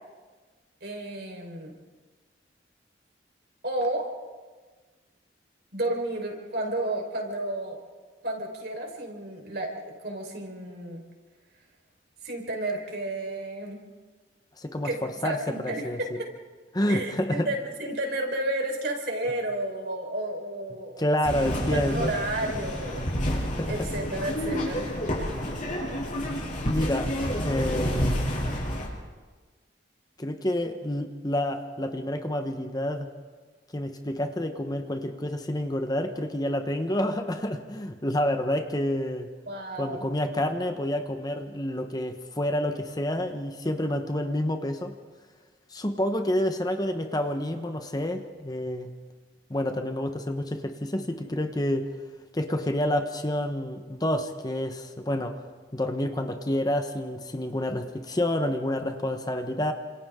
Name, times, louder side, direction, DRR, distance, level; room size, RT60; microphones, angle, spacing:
voice 1, 0.8-1.8 3.6-4.1 5.7-7.8 8.2-11.0 12.2-13.8 14.8-15.9 16.2-16.3 16.9-21.0 21.3-23.3 23.7-24.9 39.5-40.1, right 1 dB, 60° right, 1 dB, 4.6 m, -32 dB
voice 2, 14.6-16.2 16.7-17.5 21.0-22.1 23.5-23.9 26.5-27.1 27.4-28.3 30.2-33.1 33.7-39.3 39.7-44.9 45.7-48.9 49.5-51.9 52.3-55.3 55.7-59.7, left 1 dB, 20° left, 6 dB, 1.1 m, -28 dB
sound 1, 21.2-28.9, equal, 45° left, 6.1 m, -29 dB
29.5 x 27.0 x 3.8 m, 1.4 s
head